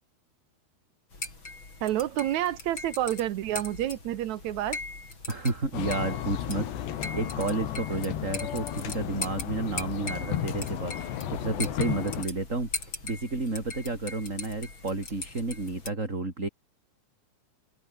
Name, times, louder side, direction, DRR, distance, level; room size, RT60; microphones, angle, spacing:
sound 1, 1.1-15.9, left 3 dB, 30° left, 6.0 m, -40 dB
voice 1, 1.8-4.8, right 13 dB, 80° right, 1.6 m, -29 dB
voice 2, 5.3-16.5, right 3 dB, 20° right, 4.2 m, -31 dB
sound 2, 5.7-12.2, left 10 dB, 85° left, 4.4 m, -34 dB
omnidirectional pair, 4.8 m